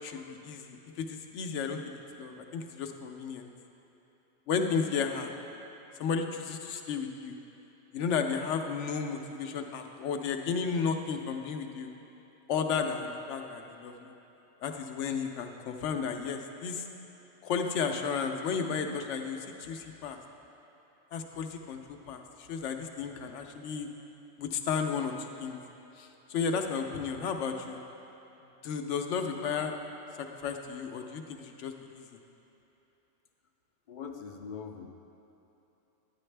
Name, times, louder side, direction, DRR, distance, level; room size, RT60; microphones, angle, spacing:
voice 1, 0.0-1.8 2.2-3.5 4.5-5.3 6.0-7.3 7.9-11.9 12.5-14.1 14.6-16.8 17.4-20.2 21.1-23.9 24.4-25.6 26.0-27.8 28.6-29.7 30.1-32.2, left 6 dB, 80° left, 5 dB, 1.0 m, -33 dB
voice 2, 33.9-34.9, left 6 dB, 55° left, 4 dB, 0.6 m, -42 dB
10.5 x 9.9 x 3.3 m, 3.0 s
omnidirectional pair, 1.2 m